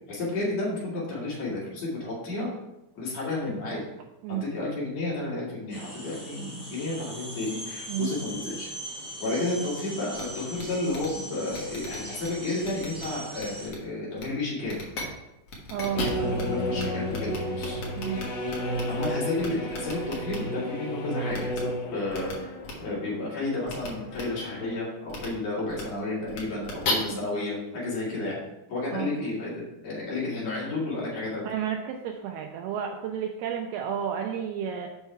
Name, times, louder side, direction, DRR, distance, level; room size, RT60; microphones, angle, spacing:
voice 1, 0.1-2.5 2.9-3.8 4.4-8.7 9.2-14.8 15.9-17.8 18.9-22.5 22.8-28.4 28.7-31.4, left 2 dB, 45° left, -6 dB, 3.1 m, -32 dB
sound 1, 5.7-13.7, right 1 dB, 15° left, 0.7 m, -40 dB
sound 2, 10.1-10.2 10.6-10.7 10.9-11.1 11.5-12.3 12.6-13.1 13.4-13.8 14.2-14.3 14.6-15.0 15.5-16.4 16.8-16.9 17.1-19.1 19.4-20.4 21.3-21.6 22.1-22.3 22.6-22.7 23.7-23.9 24.1-24.2 25.1-25.3 25.7-25.8 26.3-26.9, left 4 dB, 85° left, 1.3 m, -35 dB
voice 2, 15.7-16.1 18.0-18.2 27.0-27.2 28.9-29.1 31.5-34.9, right 9 dB, 85° right, 3 dB, 2.2 m, -31 dB
sound 3, 15.9-24.8, equal, 70° left, 2.5 m, -33 dB
7.0 x 5.5 x 4.6 m, 0.93 s
omnidirectional pair, 5.1 m